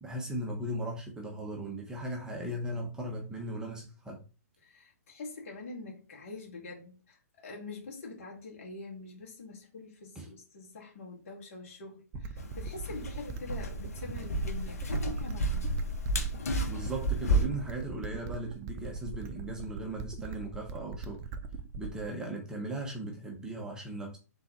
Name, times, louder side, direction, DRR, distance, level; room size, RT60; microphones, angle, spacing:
voice 1, 0.0-4.2 10.2-10.3 16.7-21.2 21.8-24.2, right 1 dB, 10° right, 0.9 m, -38 dB
voice 2, 4.6-15.7, left 3 dB, 50° left, 2.0 m, -45 dB
sound 1, 12.1-22.1, right 4 dB, 30° right, 0.5 m, -41 dB
sound 2, 12.4-17.5, right 1 dB, 65° left, 1.1 m, -32 dB
3.9 x 3.9 x 3.0 m
figure-of-eight pair, 120°, 9 cm